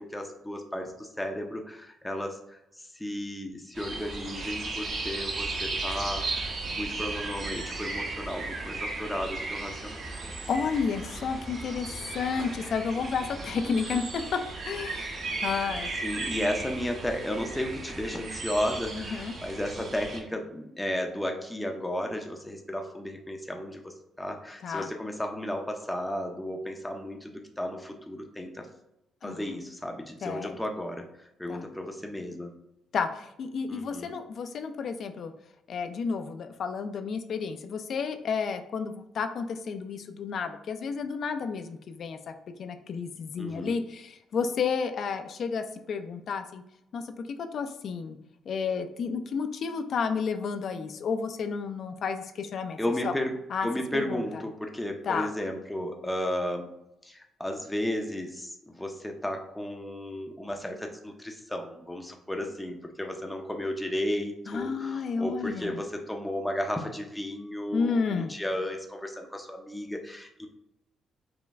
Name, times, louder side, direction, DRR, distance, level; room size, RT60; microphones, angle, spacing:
voice 1, 0.0-10.0 13.5-13.7 16.0-28.7 29.2-32.5 33.7-34.1 43.4-43.8 52.8-53.3 53.6-56.7 57.0-70.5, left 1 dB, 5° left, 2 dB, 0.5 m, -34 dB
sound 1, 3.7-20.2, right 3 dB, 60° right, 1.1 m, -35 dB
voice 2, 10.5-15.9 18.9-19.3 24.6-24.9 29.2-29.4 30.2-30.6 31.5-31.7 32.9-35.3 35.7-42.2 42.6-46.6 46.9-48.2 48.5-52.8 53.0-53.1 53.5-53.7 53.9-54.2 55.1-55.3 64.5-65.8 67.7-68.3, left 5 dB, 60° left, 8 dB, 0.4 m, -31 dB
5.1 x 2.2 x 3.4 m, 0.85 s
cardioid pair, 90°, 0 cm